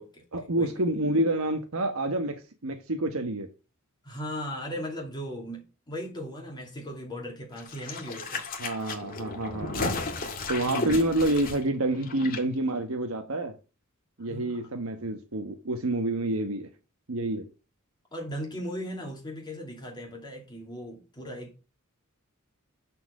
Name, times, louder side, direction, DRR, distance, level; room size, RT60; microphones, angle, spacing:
voice 1, 0.3-3.5 8.6-9.9 10.5-13.5 14.2-16.7 17.1-17.4, right 1 dB, 75° right, 1.2 m, -28 dB
voice 2, 4.0-8.4 8.9-9.1 10.7-11.0 14.3-14.6 18.1-21.6, equal, 20° left, 2.5 m, -38 dB
sound 1, 7.6-12.4 12.7-12.8, left 3 dB, 45° left, 2.0 m, -34 dB
9.7 x 4.6 x 6.5 m
head